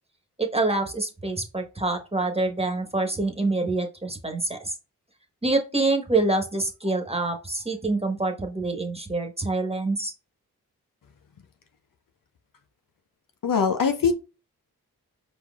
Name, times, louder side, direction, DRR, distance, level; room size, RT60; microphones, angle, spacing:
voice 1, 0.4-4.8 5.4-10.1, right 2 dB, 15° right, 4 dB, 1.6 m, -26 dB
voice 2, 13.4-14.1, left 6 dB, 55° left, 7 dB, 0.9 m, -22 dB
4.7 x 4.2 x 2.5 m, 0.30 s
supercardioid pair, 40°, 39 cm